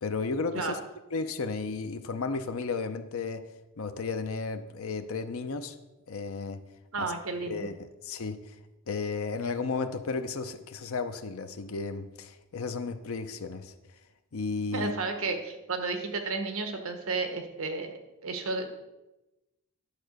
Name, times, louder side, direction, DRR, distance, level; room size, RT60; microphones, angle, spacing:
voice 1, 0.0-0.8 1.1-3.4 3.8-5.8 6.1-6.6 7.0-7.1 7.5-7.7 8.0-8.4 8.9-13.7 14.3-14.9, left 4 dB, 65° left, 9 dB, 0.6 m, -33 dB
voice 2, 6.9-7.7 14.7-18.7, right 3 dB, 65° right, 5 dB, 1.1 m, -32 dB
10.0 x 3.8 x 6.4 m, 1.0 s
head